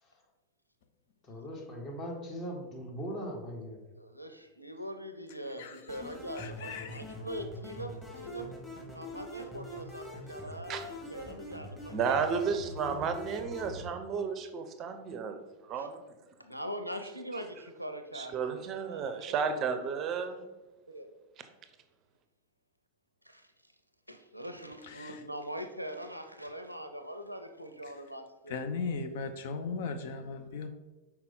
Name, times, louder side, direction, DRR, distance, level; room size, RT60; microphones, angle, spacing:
voice 1, 1.3-3.8, equal, 30° left, 0 dB, 1.5 m, -39 dB
voice 2, 4.0-8.5 8.9-12.6 15.7-15.9 16.4-19.8 20.9-21.1 23.2-23.7 24.1-28.6, equal, 90° right, 7 dB, 0.5 m, -43 dB
sound 1, 5.9-13.9, left 1 dB, 10° left, 1.6 m, -43 dB
voice 3, 6.4-7.0 24.9-25.2 28.5-30.7, left 4 dB, 55° left, 8 dB, 0.5 m, -37 dB
voice 4, 11.9-16.0 18.1-20.5, right 6 dB, 30° right, 8 dB, 0.5 m, -33 dB
5.7 x 4.3 x 3.8 m, 1.1 s
figure-of-eight pair, 90°, 0 cm